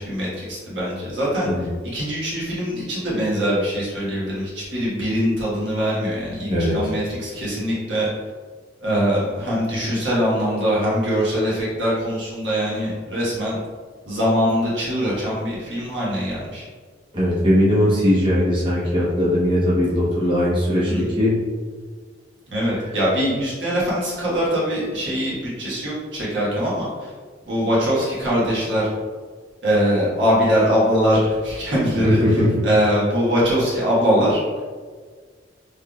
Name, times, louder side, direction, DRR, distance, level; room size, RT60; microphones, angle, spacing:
voice 1, 0.0-1.5 1.9-8.1 8.8-13.6 14.0-16.6 20.9-21.0 22.5-27.1 27.5-28.8 29.6-34.4, equal, 85° right, -7 dB, 1.4 m, -22 dB
voice 2, 17.1-21.3 32.0-32.7, equal, 25° right, -9 dB, 1.0 m, -19 dB
3.8 x 3.3 x 2.3 m, 1.5 s
head